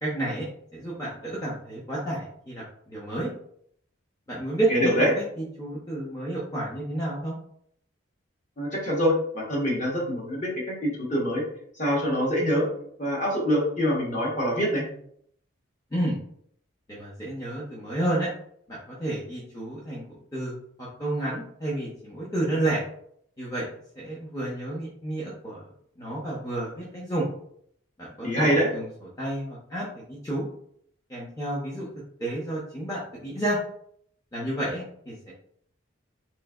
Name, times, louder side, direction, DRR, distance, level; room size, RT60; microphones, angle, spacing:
voice 1, 0.0-0.5 0.7-3.3 4.3-7.3 15.9-16.2 16.9-18.3 18.7-20.0 20.3-22.8 23.4-23.7 24.0-25.6 26.0-27.2 28.0-28.9 29.2-30.5 31.1-31.9 32.2-33.6 34.3-35.3, right 1 dB, 15° left, -7 dB, 0.6 m, -31 dB
voice 2, 4.7-5.1 8.6-11.4 11.8-12.7 13.0-14.8 28.2-28.7, equal, 40° left, -3 dB, 1.0 m, -25 dB
3.4 x 3.0 x 2.3 m, 0.67 s
head